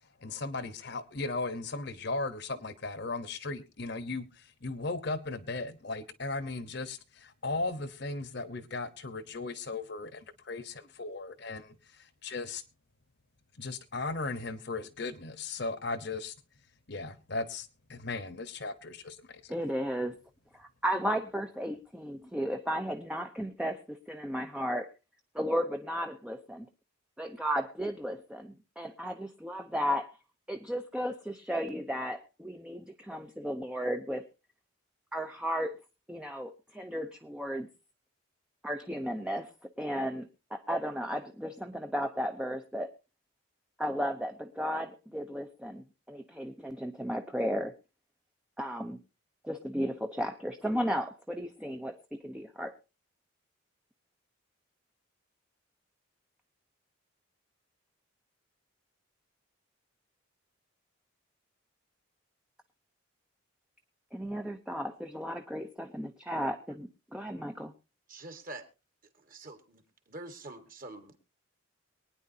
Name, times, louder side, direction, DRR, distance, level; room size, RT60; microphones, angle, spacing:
voice 1, 0.2-4.3 4.6-10.2 10.4-11.7 12.2-12.6 13.6-16.3 16.9-19.5, left 3 dB, 55° left, 1.0 m, -36 dB
voice 2, 19.5-20.1 20.5-24.9 25.3-26.7 27.2-30.1 30.5-34.3 35.1-35.7 36.1-37.7 38.6-39.5 39.8-42.9 43.8-47.7 48.6-49.0 49.4-52.7 64.1-67.7, equal, 5° right, 0.6 m, -34 dB
voice 3, 68.1-68.6 69.3-69.8 70.1-71.2, right 2 dB, 40° right, 1.8 m, -45 dB
23.5 x 9.6 x 2.7 m
head